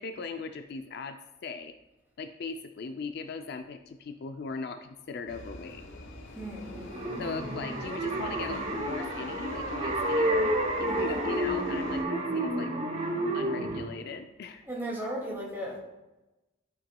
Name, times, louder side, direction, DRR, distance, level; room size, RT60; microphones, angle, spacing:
voice 1, 0.0-1.8 2.2-5.8 7.2-12.7 13.3-14.6, left 4 dB, 50° left, 8 dB, 0.3 m, -39 dB
sound 1, 5.3-12.0, left 2 dB, 70° left, 1.0 m, -44 dB
voice 2, 6.3-6.9 10.8-11.5 14.7-15.8, right 1 dB, 10° right, -5 dB, 2.1 m, -36 dB
sound 2, 6.7-13.9, right 1 dB, 30° right, 0.7 m, -30 dB
11.5 x 5.8 x 2.2 m, 1.0 s
head